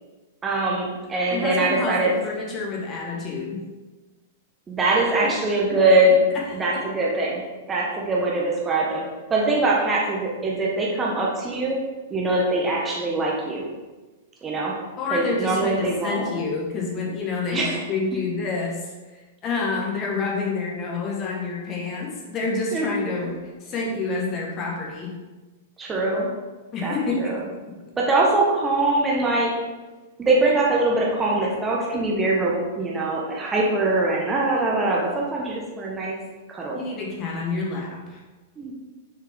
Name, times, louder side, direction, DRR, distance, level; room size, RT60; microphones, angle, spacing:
voice 1, 0.4-2.1 4.7-6.2 6.5-11.8 12.1-13.7 14.4-14.8 15.1-16.3 17.5-17.8 22.7-22.9 25.8-26.3 26.8-27.4 28.0-29.7 30.2-36.2 36.5-36.8 38.6-38.7, right 2 dB, 15° right, -3 dB, 1.2 m, -22 dB
voice 2, 1.3-3.6 5.2-5.3 6.7-6.8 15.0-23.3 23.6-25.1 26.7-27.8 36.7-38.2, left 3 dB, 30° left, -2 dB, 1.5 m, -28 dB
6.4 x 4.8 x 3.6 m, 1.2 s
figure-of-eight pair, 100°, 0 cm